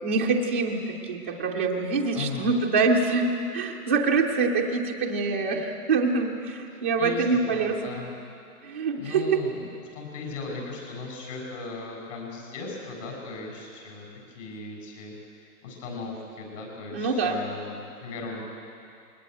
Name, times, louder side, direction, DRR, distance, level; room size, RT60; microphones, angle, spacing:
voice 1, 0.0-7.8 8.6-9.4 16.9-17.4, right 4 dB, 10° right, -3 dB, 0.5 m, -25 dB
voice 2, 2.1-2.5 6.7-8.1 8.7-18.4, left 3 dB, 50° left, 1 dB, 7.5 m, -38 dB
21.5 x 19.5 x 9.4 m, 2.6 s
hypercardioid pair, 165°, 46 cm